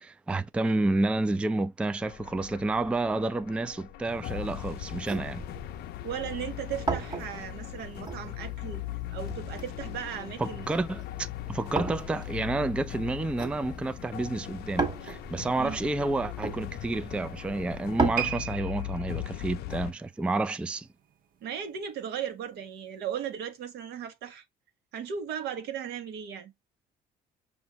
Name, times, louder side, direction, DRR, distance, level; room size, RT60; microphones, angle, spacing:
voice 1, 0.0-5.4 10.4-20.9, right 2 dB, 5° right, 0.3 m, -30 dB
sound 1, 2.0-19.9, left 15 dB, 70° left, 0.5 m, -39 dB
sound 2, 4.3-18.1, right 4 dB, 25° right, 1.5 m, -37 dB
voice 2, 6.0-8.8 9.1-10.7 15.6-15.8 21.4-24.4 24.9-26.5, right 8 dB, 75° right, 1.1 m, -36 dB
sound 3, 18.1-21.4 21.7-22.0 22.7-22.8, right 10 dB, 55° right, 0.7 m, -38 dB
6.1 x 2.6 x 3.0 m
cardioid pair, 110°, 17 cm